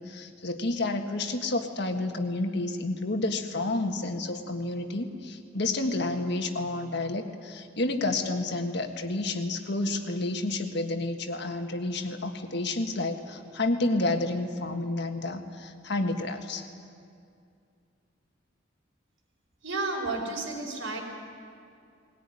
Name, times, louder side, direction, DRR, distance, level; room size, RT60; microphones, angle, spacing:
voice 1, 0.0-16.7, left 2 dB, 60° left, 5 dB, 1.7 m, -30 dB
voice 2, 19.6-21.0, right 3 dB, 80° right, 1 dB, 4.9 m, -32 dB
20.5 x 18.0 x 9.9 m, 2.4 s
head